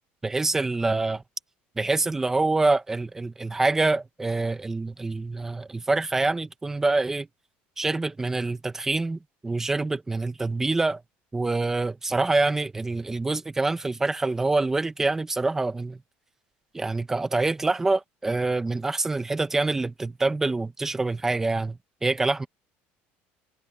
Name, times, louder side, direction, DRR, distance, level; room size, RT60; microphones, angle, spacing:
voice 1, 0.2-1.2 1.8-7.3 7.8-11.0 11.3-16.0 16.7-22.5, right 3 dB, 10° right, 1.2 m, -26 dB
cardioid pair, 170°, 4 cm